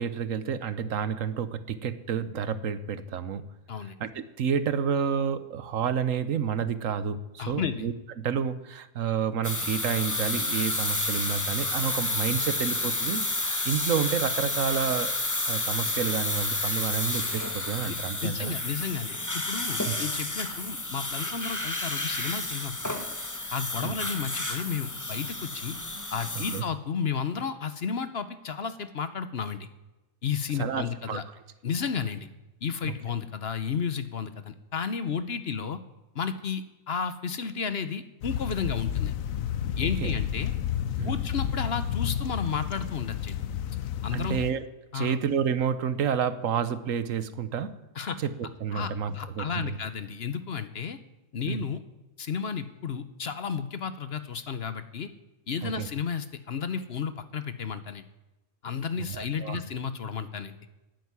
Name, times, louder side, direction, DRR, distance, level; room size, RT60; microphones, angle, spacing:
voice 1, 0.0-3.4 4.0-13.3 13.6-15.1 15.5-18.5 19.8-19.9 23.8-23.9 26.5-26.6 30.6-31.2 32.9-33.0 40.0-40.1 41.0-41.2 44.1-44.6 44.9-47.8 48.2-49.7 51.5-51.6 55.6-55.9 59.1-59.6, right 7 dB, 70° right, 13 dB, 1.3 m, -30 dB
voice 2, 7.4-7.9 17.9-23.1 23.5-25.8 26.1-29.7 30.2-31.2 31.6-32.3 32.6-35.8 36.1-39.1 39.8-40.5 41.0-43.4 44.0-44.4 44.9-45.2 48.0-48.2 48.7-51.0 51.3-51.8 52.2-55.1 55.5-58.0 58.6-60.6, left 6 dB, 50° left, 12 dB, 1.0 m, -32 dB
sound 1, 9.4-26.6, left 2 dB, 15° left, 1.2 m, -30 dB
sound 2, 38.2-44.5, left 10 dB, 75° left, 1.2 m, -31 dB
12.0 x 9.3 x 9.6 m, 1.0 s
omnidirectional pair, 1.4 m